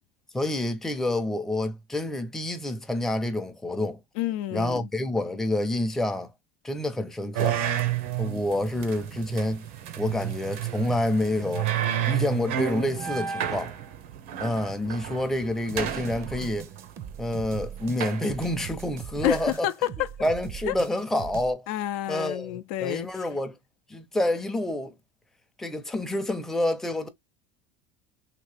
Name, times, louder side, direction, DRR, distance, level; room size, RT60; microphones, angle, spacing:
voice 1, 0.3-4.0 4.5-6.3 6.6-7.6 8.2-9.6 10.0-11.7 12.1-13.7 14.4-16.7 17.2-19.7 20.2-21.7 22.1-23.6 23.9-24.9 25.6-27.1, left 1 dB, 5° left, 0.6 m, -28 dB
voice 2, 4.2-4.9 19.2-20.1 20.7-20.8 21.7-23.1, left 14 dB, 80° left, 0.5 m, -29 dB
sound 1, 7.3-18.7, right 10 dB, 90° right, 0.8 m, -31 dB
sound 2, 15.7-21.5, right 9 dB, 45° right, 0.5 m, -40 dB
3.0 x 2.8 x 3.2 m
supercardioid pair, 130°, 7 cm